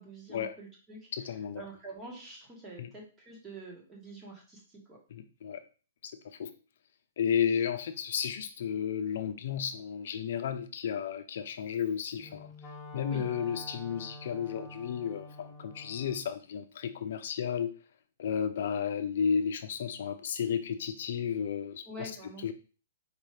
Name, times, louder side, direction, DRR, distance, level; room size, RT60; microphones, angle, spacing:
voice 1, 0.0-1.0 1.6-5.0 13.1-13.2 21.9-22.5, right 2 dB, 15° right, -2 dB, 1.3 m, -46 dB
voice 2, 1.1-1.6 2.8-2.9 5.1-5.6 6.0-6.5 7.2-12.5 12.9-17.7 18.2-22.1 22.4-22.5, left 7 dB, 60° left, 10 dB, 0.6 m, -33 dB
Wind instrument woodwind instrument, 12.1-16.3, left 1 dB, 15° left, 0.8 m, -47 dB
4.4 x 2.7 x 3.2 m, 0.36 s
hypercardioid pair, 150°, 0 cm